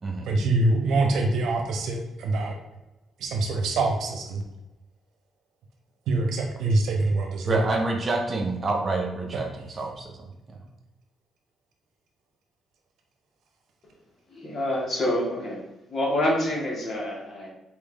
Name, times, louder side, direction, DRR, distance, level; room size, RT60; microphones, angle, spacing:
voice 1, 0.3-2.6 3.2-4.4 6.1-7.7, right 2 dB, 75° right, 2 dB, 0.9 m, -24 dB
voice 2, 7.5-10.6, right 3 dB, 35° right, 2 dB, 0.9 m, -28 dB
voice 3, 14.3-15.6 15.9-17.5, left 1 dB, 40° left, -3 dB, 1.6 m, -27 dB
4.4 x 3.3 x 3.7 m, 0.96 s
cardioid pair, 100°, 0 cm